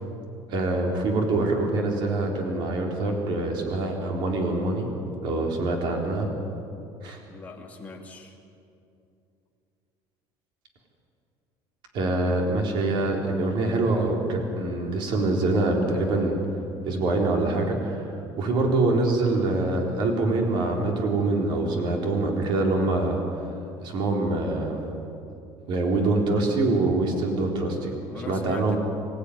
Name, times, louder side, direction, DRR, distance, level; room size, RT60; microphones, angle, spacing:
voice 1, 0.5-4.9 5.2-6.3 7.0-7.2 11.9-16.4 16.8-18.1 18.4-23.2 23.8-24.8 25.7-27.9 28.3-28.8, right 2 dB, 50° right, 1 dB, 3.8 m, -25 dB
voice 2, 7.3-8.4 28.1-28.8, left 3 dB, 15° left, -1 dB, 2.7 m, -40 dB
25.5 x 15.5 x 9.9 m, 2.6 s
cardioid pair, 175°, 10 cm